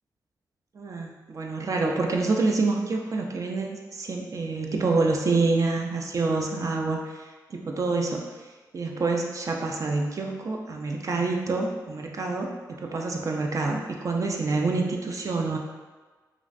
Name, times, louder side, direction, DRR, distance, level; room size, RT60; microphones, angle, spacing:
voice 1, 0.8-8.2 8.7-15.6, right 3 dB, 45° right, 1 dB, 0.3 m, -27 dB
3.0 x 2.4 x 2.4 m, 1.3 s
cardioid pair, 65°, 7 cm